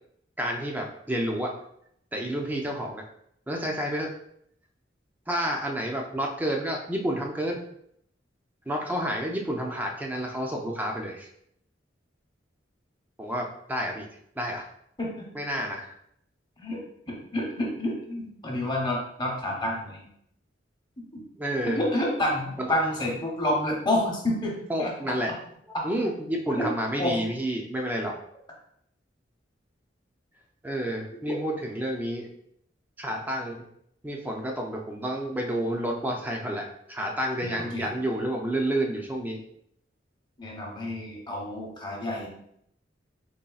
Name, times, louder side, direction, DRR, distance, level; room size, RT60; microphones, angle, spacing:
voice 1, 0.4-1.5 2.1-3.1 3.5-4.1 5.3-7.6 8.7-11.3 13.2-14.1 14.4-14.7 15.3-15.9 21.4-21.8 22.6-22.7 24.7-25.3 25.8-28.1 30.6-32.3 33.0-33.7 34.0-39.4, right 1 dB, 10° right, 0 dB, 0.4 m, -30 dB
voice 2, 16.6-20.1 21.0-21.2 21.7-24.5 24.8-24.9 26.5-26.7 27.0-27.2 31.3-31.4 37.6-37.9 40.4-42.3, left 1 dB, 25° left, -2 dB, 0.9 m, -29 dB
4.0 x 3.1 x 2.3 m, 0.70 s
head